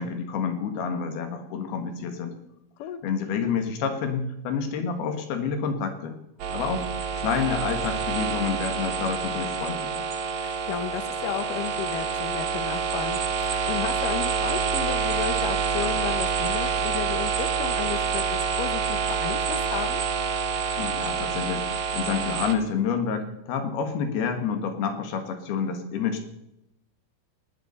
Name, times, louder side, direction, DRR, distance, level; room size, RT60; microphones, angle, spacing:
voice 1, 0.0-2.3 3.0-6.2 6.5-6.9 7.1-10.1 20.8-26.2, left 6 dB, 65° left, 6 dB, 3.4 m, -28 dB
sound 1, 6.4-22.5, right 6 dB, 75° right, 1.7 m, -27 dB
voice 2, 10.4-20.0, left 10 dB, 90° left, 11 dB, 1.8 m, -33 dB
18.5 x 11.0 x 5.5 m, 0.85 s
omnidirectional pair, 5.3 m